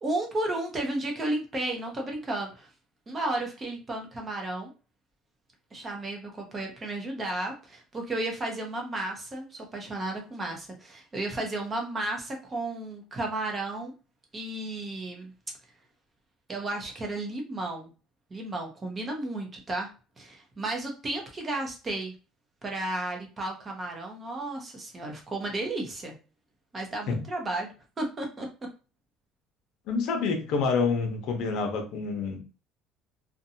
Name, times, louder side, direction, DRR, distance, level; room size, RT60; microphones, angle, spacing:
voice 1, 0.0-2.7 3.1-4.7 5.7-13.9 14.3-15.3 16.5-17.9 18.3-19.9 20.2-22.1 22.6-26.1 26.7-27.7 28.0-28.5, right 2 dB, 20° right, 1 dB, 0.7 m, -33 dB
voice 2, 29.9-32.4, left 4 dB, 65° left, 5 dB, 0.7 m, -27 dB
2.6 x 2.2 x 2.7 m, 0.34 s
cardioid pair, 145°, 0 cm